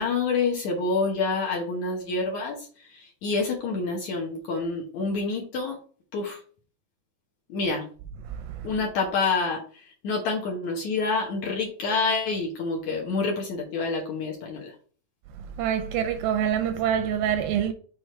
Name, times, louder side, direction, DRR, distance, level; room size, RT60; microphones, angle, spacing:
voice 1, 0.0-5.8 6.1-6.4 7.5-7.9 8.6-14.7, left 4 dB, 65° left, 1.9 m, -27 dB
voice 2, 15.6-17.7, right 9 dB, 80° right, 2.1 m, -25 dB
6.5 x 3.5 x 4.5 m
omnidirectional pair, 4.4 m